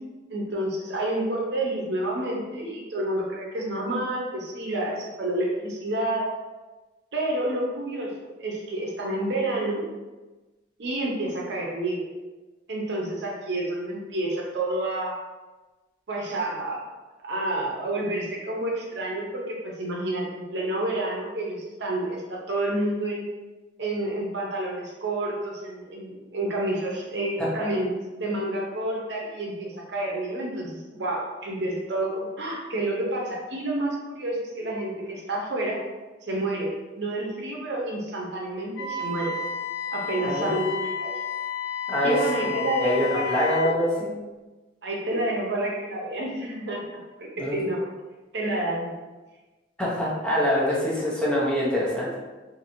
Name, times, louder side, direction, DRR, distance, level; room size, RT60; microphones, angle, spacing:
voice 1, 0.3-6.3 7.1-8.1 8.4-9.8 10.8-12.1 12.7-15.1 16.1-16.8 17.2-23.2 23.8-27.9 28.1-35.8 36.2-39.4 39.9-41.1 42.0-43.3 43.6-43.7 44.8-47.9 48.3-48.9, right 1 dB, 70° right, -2 dB, 0.7 m, -29 dB
Wind instrument woodwind instrument, 38.8-43.8, left 6 dB, 80° left, 0.4 m, -31 dB
voice 2, 40.2-40.6 41.9-42.2 42.5-44.1 47.4-47.7 49.8-52.1, equal, 5° left, -7 dB, 0.6 m, -25 dB
2.9 x 2.6 x 2.6 m, 1.2 s
head